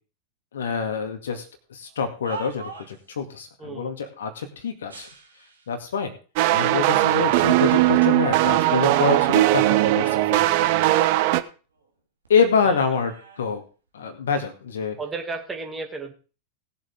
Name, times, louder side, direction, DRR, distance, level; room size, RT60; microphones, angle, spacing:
voice 1, 0.5-1.4 1.7-5.1 5.7-6.1 6.5-10.7 12.3-13.1 13.4-13.6 13.9-15.0, left 6 dB, 65° left, 6 dB, 2.1 m, -26 dB
sound 1, 1.8-3.1 4.8-5.8 6.5-6.6 7.4-8.1 8.5-10.0 10.3-12.0 12.2-14.4 15.1-15.4, right 4 dB, 75° right, 2.3 m, -44 dB
sound 2, 6.4-11.4, right 16 dB, 45° right, 0.7 m, -19 dB
voice 2, 15.0-16.1, right 4 dB, 15° right, 3 dB, 2.4 m, -33 dB
19.0 x 7.4 x 3.6 m, 0.35 s
figure-of-eight pair, 90°, 0 cm